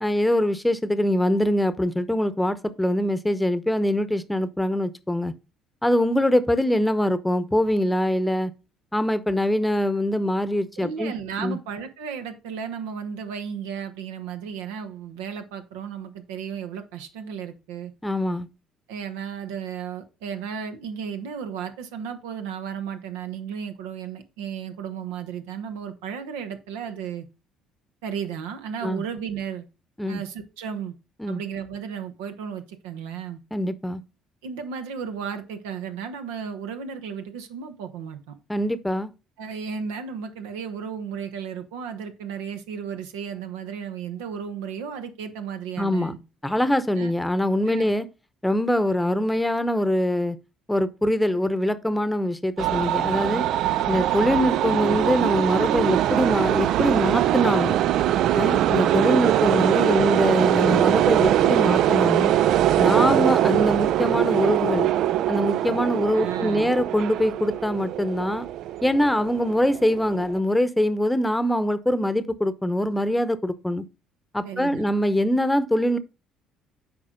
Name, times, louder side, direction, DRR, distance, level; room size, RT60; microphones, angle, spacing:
voice 1, 0.0-5.3 5.8-8.5 8.9-11.6 18.0-18.5 28.8-29.0 30.0-30.2 31.2-31.4 33.5-34.0 38.5-39.1 45.8-46.1 46.4-48.1 48.4-50.4 50.7-53.4 53.9-57.8 58.3-62.3 62.8-64.9 65.3-68.5 68.8-73.8 74.3-76.0, left 1 dB, 10° left, 0.9 m, -23 dB
voice 2, 10.8-17.9 18.9-27.3 28.0-29.7 30.1-30.9 31.3-33.4 34.4-38.3 39.4-46.2 47.0-47.1 47.7-47.9 66.1-66.7 74.4-74.9, right 7 dB, 80° right, 1.1 m, -34 dB
sound 1, 52.6-70.3, right 12 dB, 65° right, 0.4 m, -22 dB
8.6 x 4.8 x 3.8 m
hypercardioid pair, 60°, 0 cm